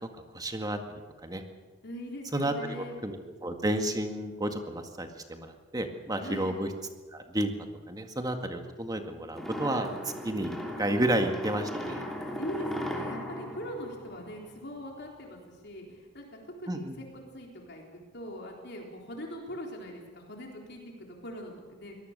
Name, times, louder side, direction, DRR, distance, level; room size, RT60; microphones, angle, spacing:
voice 1, 0.3-1.4 2.3-6.7 7.1-7.5 7.9-9.9 10.2-12.0 16.7-17.0, right 1 dB, 20° right, 5 dB, 1.9 m, -31 dB
voice 2, 1.8-3.0 6.2-6.6 12.2-17.0 17.3-17.8 18.1-22.0, equal, 60° left, 0 dB, 3.9 m, -41 dB
sound 1, 9.3-14.7, equal, ahead, 2.9 m, -37 dB
24.5 x 18.5 x 6.8 m, 1.3 s
head